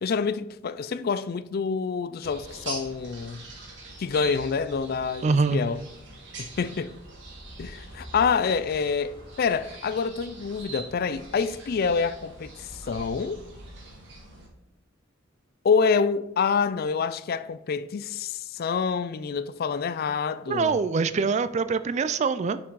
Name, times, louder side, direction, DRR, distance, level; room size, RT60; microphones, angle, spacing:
voice 1, 0.0-3.4 4.0-5.8 6.4-7.0 7.6-13.4 15.6-20.8, left 5 dB, 45° left, 0.4 m, -27 dB
sound 1, 2.2-14.5, right 2 dB, 60° right, 1.9 m, -43 dB
voice 2, 5.2-5.6 20.5-22.6, right 4 dB, 35° right, 0.3 m, -24 dB
5.9 x 5.9 x 4.7 m
head